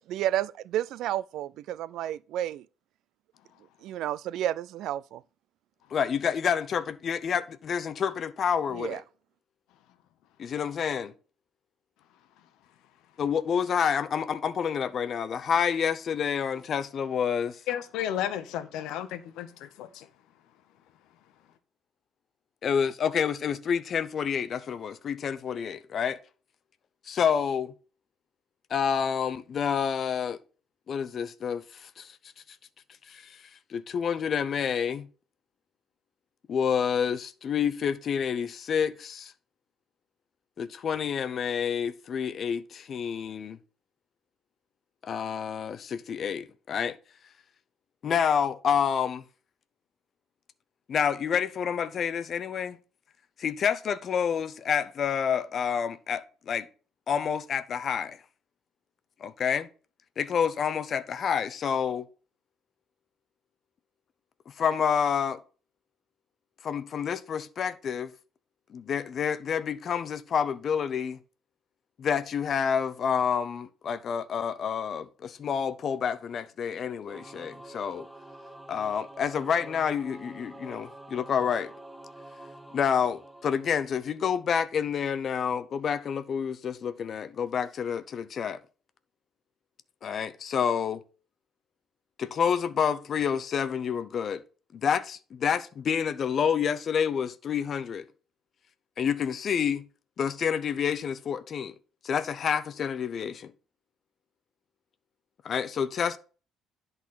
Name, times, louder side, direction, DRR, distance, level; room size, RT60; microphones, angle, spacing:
voice 1, 0.1-2.6 3.8-5.2 8.7-9.0, right 12 dB, 65° right, 0.3 m, -31 dB
voice 2, 5.9-9.0 10.4-11.1 13.2-17.6 22.6-26.2 27.0-27.7 28.7-30.4 30.9-32.2 33.1-35.1 36.5-39.3 40.6-43.6 45.0-47.0 48.0-49.2 50.9-52.8 53.4-56.7 57.1-58.2 59.2-59.7 60.2-62.1 64.5-65.4 66.6-68.1 68.7-71.2 72.0-78.1 78.7-81.7 82.7-88.6 90.0-91.0 92.2-94.4 94.7-98.1 99.0-99.9 100.2-101.7 102.0-103.5 105.4-106.2, left 7 dB, 40° left, 0.6 m, -28 dB
voice 3, 17.7-20.1, left 11 dB, 80° left, 0.8 m, -33 dB
Singing / Musical instrument, 77.1-84.6, right 1 dB, 5° right, 0.6 m, -48 dB
10.5 x 4.0 x 5.7 m
cardioid pair, 160°, 0 cm